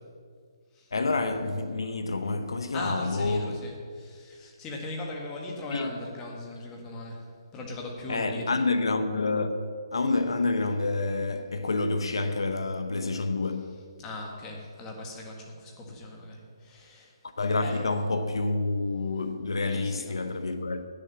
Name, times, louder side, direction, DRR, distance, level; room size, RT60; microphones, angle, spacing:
voice 1, 0.9-3.7 5.7-6.0 8.1-9.6 9.9-13.9 17.4-20.8, left 3 dB, 85° left, 0.8 m, -28 dB
voice 2, 2.7-7.2 7.5-8.6 14.0-17.1 17.6-17.8 19.6-20.2, left 2 dB, 20° left, 1.7 m, -39 dB
9.9 x 6.9 x 7.8 m
hypercardioid pair, 155°, 3 cm